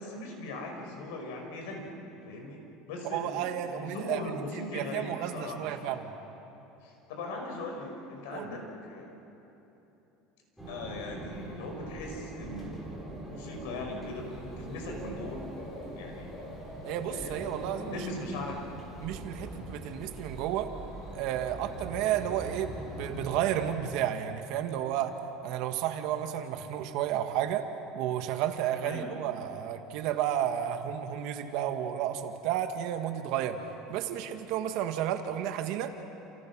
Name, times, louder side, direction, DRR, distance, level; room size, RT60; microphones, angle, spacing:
voice 1, 0.0-1.9 2.3-2.6 2.9-6.0 6.8-9.1 10.7-12.9 13.3-14.3 14.6-15.4 16.0-16.3 17.1-17.4 17.7-18.6 28.8-29.1, left 2 dB, 85° left, 2 dB, 6.0 m, -39 dB
voice 2, 3.1-4.2 4.7-6.1 8.3-8.5 16.8-18.0 19.0-20.7 21.1-25.1 25.4-27.6 27.9-33.6 33.9-35.9, right 10 dB, 55° right, 7 dB, 1.7 m, -32 dB
sound 1, 10.6-23.5, right 2 dB, ahead, 3.9 m, -43 dB
Bird / Cricket, 14.0-23.7, left 1 dB, 30° left, 7.9 m, -47 dB
28.5 x 28.5 x 6.3 m, 3.0 s
cardioid pair, 170°, 0 cm